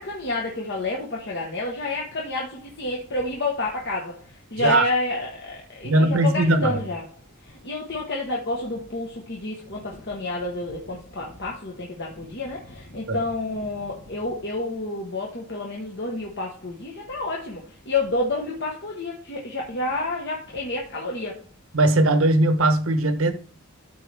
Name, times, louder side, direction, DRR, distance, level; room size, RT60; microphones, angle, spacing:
voice 1, 0.0-7.0 7.4-21.4, left 2 dB, 55° left, 1.3 m, -29 dB
voice 2, 5.8-6.8 13.1-13.2 21.7-23.3, right 2 dB, 70° right, 1.0 m, -19 dB
13.0 x 4.3 x 3.5 m
head